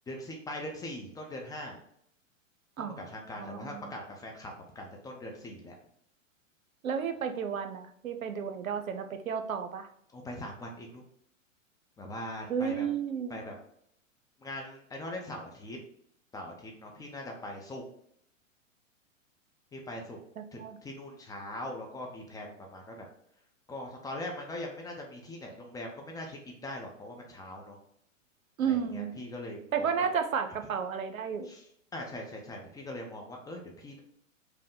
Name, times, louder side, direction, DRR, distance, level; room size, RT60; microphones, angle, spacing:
voice 1, 0.1-1.8 2.8-5.8 10.1-11.0 12.0-12.9 13.3-13.6 14.4-15.8 16.3-17.8 19.7-20.2 20.5-23.1 23.7-27.8 28.6-30.1 31.4-31.7 31.9-34.0, left 1 dB, 10° left, 1 dB, 0.5 m, -41 dB
voice 2, 3.4-3.9 6.8-9.9 12.5-13.4 20.4-20.8 28.6-29.1 29.7-31.5, right 7 dB, 90° right, 8 dB, 0.7 m, -32 dB
5.3 x 2.1 x 3.7 m, 0.69 s
hypercardioid pair, 110°, 40 cm